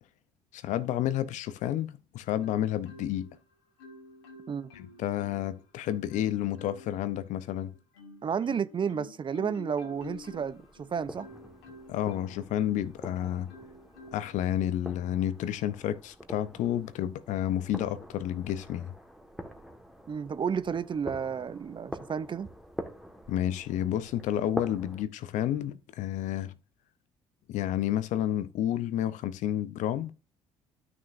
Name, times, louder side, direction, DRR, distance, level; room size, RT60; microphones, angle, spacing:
voice 1, 0.5-3.3 4.7-7.7 11.9-13.5 14.1-18.9 23.3-26.5 27.5-30.1, left 11 dB, 65° left, 0.7 m, -30 dB
Marimba xylophone, 2.4-3.4 3.8-5.6 6.1-7.0 7.5-13.0 13.5-14.4 14.9-15.2, left 3 dB, 90° left, 2.0 m, -49 dB
voice 2, 8.2-11.3 20.1-22.5, right 7 dB, 35° right, 0.6 m, -32 dB
sound 1, 9.9-25.0, equal, ahead, 1.5 m, -45 dB
12.5 x 6.2 x 2.6 m
hypercardioid pair, 60°, 13 cm